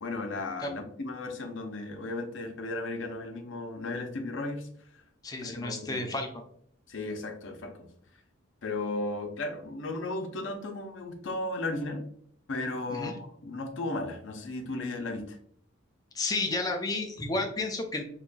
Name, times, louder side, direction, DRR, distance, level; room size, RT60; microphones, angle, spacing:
voice 1, 0.0-5.0 5.4-6.1 6.9-7.9 8.6-12.1 12.5-15.4, left 2 dB, 65° left, 5 dB, 0.6 m, -35 dB
voice 2, 5.2-6.3 12.9-13.1 16.1-18.0, left 2 dB, 20° left, 3 dB, 0.5 m, -31 dB
4.0 x 2.9 x 2.3 m, 0.65 s
head